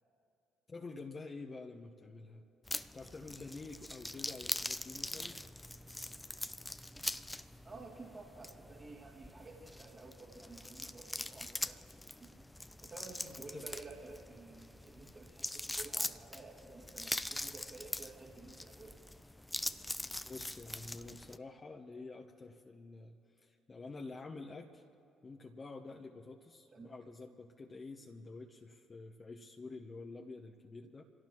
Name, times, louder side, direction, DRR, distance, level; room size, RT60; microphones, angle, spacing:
voice 1, 0.7-2.4 2.9-5.4 13.5-13.7 20.2-24.8 25.2-31.0, left 3 dB, 35° left, 1 dB, 1.1 m, -48 dB
sound 1, 2.6-21.4, left 1 dB, 10° left, 0.6 m, -43 dB
voice 2, 7.6-12.4 12.8-19.0 26.7-26.9, right 3 dB, 40° right, -5 dB, 2.7 m, -52 dB
27.0 x 17.0 x 3.1 m, 2.8 s
hypercardioid pair, 50°, 0 cm